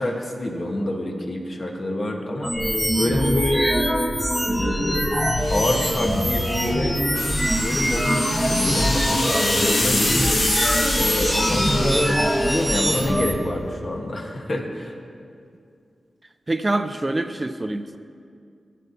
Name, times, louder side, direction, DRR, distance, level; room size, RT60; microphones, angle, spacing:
voice 1, 0.0-2.5 3.0-3.7 4.5-5.1 5.5-7.0 7.6-10.4 10.9-12.1 12.4-14.9, left 1 dB, 50° left, 1 dB, 1.3 m, -26 dB
sound 1, 2.4-13.3, equal, 5° left, 0.9 m, -23 dB
sound 2, 5.1-13.7, left 1 dB, 85° left, 1.6 m, -27 dB
voice 2, 11.7-12.1 16.5-18.0, right 2 dB, 30° right, 9 dB, 0.4 m, -26 dB
15.5 x 8.5 x 2.7 m, 2.3 s
wide cardioid pair, 75°, 0 cm